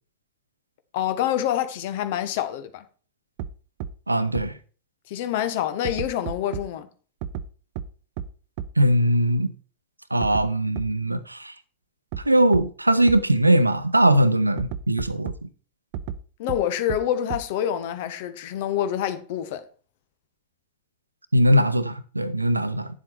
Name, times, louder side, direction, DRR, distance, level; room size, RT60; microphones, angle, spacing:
voice 1, 0.9-2.8 5.1-6.9 16.4-19.6, left 10 dB, 50° left, 1.3 m, -26 dB
sound 1, 3.4-3.5 3.8-3.9 4.3-4.4 5.8-6.6 7.2-7.4 7.8-7.9 8.2-8.3 8.6-8.7 10.2-10.4 10.8-10.9 12.1-12.2 12.5-12.6 13.1-13.2 14.6-15.4 15.9-16.2 16.5-16.6 16.9-17.0 17.3-17.4, right 10 dB, 45° right, 0.7 m, -31 dB
voice 2, 4.1-4.6 8.8-9.5 10.1-11.5 12.3-15.5 21.3-22.9, right 1 dB, 85° right, 0.7 m, -20 dB
9.6 x 7.5 x 4.7 m
figure-of-eight pair, 90°, 0 cm